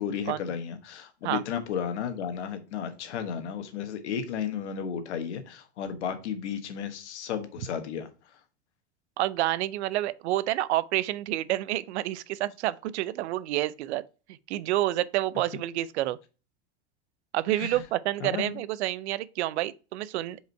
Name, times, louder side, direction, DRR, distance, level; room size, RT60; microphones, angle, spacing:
voice 1, 0.0-8.4 17.5-17.8 18.2-18.6, left 8 dB, 80° left, 1.4 m, -33 dB
voice 2, 9.2-14.0 14.5-16.2 17.3-20.4, right 15 dB, 75° right, 0.6 m, -28 dB
5.3 x 4.9 x 4.5 m
hypercardioid pair, 105°, 34 cm